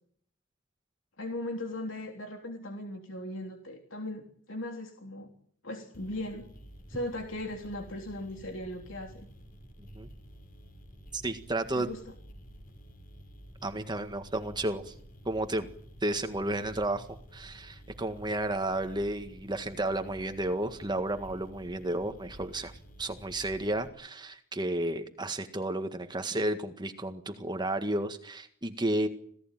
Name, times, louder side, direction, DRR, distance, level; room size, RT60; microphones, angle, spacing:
voice 1, 1.2-5.3 5.6-6.4 6.9-9.3 11.7-12.0, left 1 dB, 70° left, 3 dB, 3.5 m, -38 dB
sound 1, 5.9-23.9, equal, 45° left, 6.0 m, -51 dB
voice 2, 11.1-11.9 13.6-14.9 15.2-15.7 16.0-17.1 17.3-29.1, right 1 dB, 20° right, 7 dB, 1.8 m, -32 dB
27.5 x 17.0 x 9.2 m, 0.63 s
head